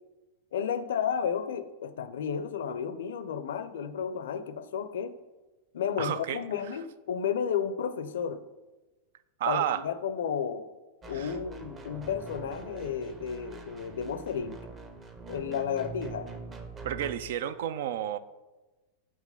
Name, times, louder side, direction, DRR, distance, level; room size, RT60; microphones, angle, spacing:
voice 1, 0.5-5.1 5.7-8.4 9.5-10.7 11.1-14.6 15.3-16.3, left 7 dB, 80° left, 13 dB, 0.4 m, -32 dB
voice 2, 6.0-6.4 6.7-6.8 9.4-9.8 11.1-11.3 16.8-18.2, right 10 dB, 70° right, 14 dB, 0.4 m, -31 dB
sound 1, 11.0-17.1, right 4 dB, 25° right, 0.8 m, -44 dB
4.9 x 3.7 x 5.5 m, 1.1 s
hypercardioid pair, 120°, 0 cm